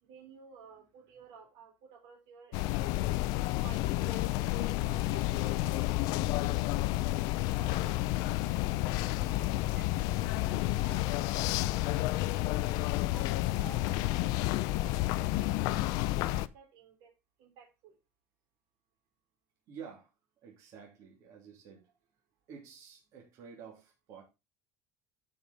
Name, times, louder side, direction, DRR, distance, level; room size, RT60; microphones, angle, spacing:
voice 1, 0.0-2.9 3.6-5.6 6.6-7.2 7.5-11.8 12.6-12.8 13.1-15.1 15.4-17.1 17.4-18.0, right 7 dB, 65° right, 3 dB, 3.2 m, -55 dB
sound 1, 2.5-16.5, left 17 dB, 65° left, 0.5 m, -30 dB
voice 2, 19.7-20.1 20.4-21.8 22.5-24.2, right 7 dB, 50° right, -1 dB, 3.0 m, -50 dB
12.0 x 5.2 x 4.1 m, 0.26 s
cardioid pair, 160°, 7 cm